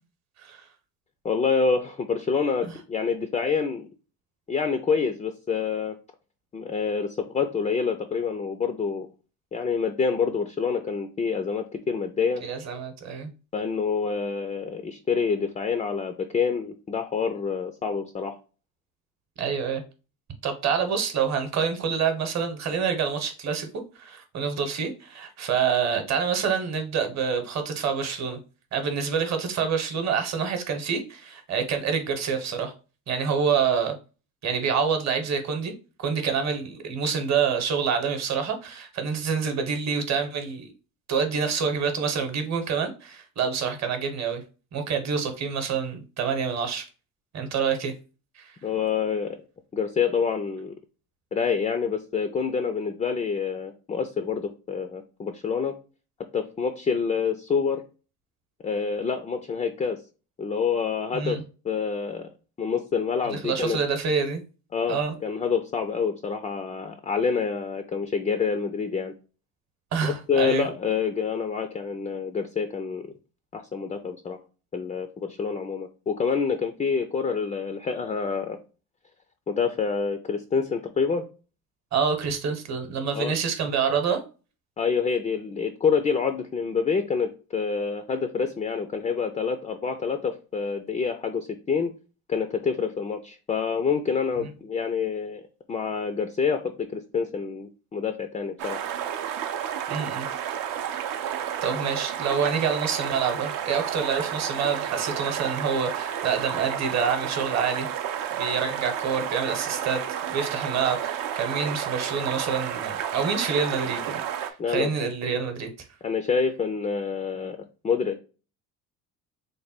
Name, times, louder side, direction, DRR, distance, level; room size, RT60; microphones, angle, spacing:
voice 1, 1.2-3.9 4.5-6.0 6.5-9.1 9.5-12.4 13.5-18.4 48.6-49.4 49.7-50.7 51.3-55.8 56.3-57.8 58.6-60.0 60.4-61.4 61.6-62.3 62.6-63.8 64.7-69.1 70.0-73.1 73.5-74.4 74.7-78.6 79.5-81.2 83.1-83.3 84.8-91.9 92.3-95.4 95.7-98.8 114.6-114.9 116.0-117.6 117.8-118.2, left 5 dB, 20° left, 0.3 m, -27 dB
voice 2, 12.4-13.3 19.4-19.8 20.4-23.7 24.0-28.4 28.7-32.7 33.1-33.9 34.4-35.7 36.0-40.7 41.1-44.4 44.7-46.8 47.3-47.9 48.4-48.5 61.1-61.4 63.3-64.4 64.9-65.1 69.9-70.7 81.9-84.2 99.9-100.3 101.6-107.9 108.3-110.0 110.3-115.7, right 6 dB, 45° right, 0.9 m, -27 dB
sound 1, 98.6-114.5, right 9 dB, 60° right, 0.6 m, -31 dB
3.3 x 2.2 x 4.2 m
supercardioid pair, 85°, 39 cm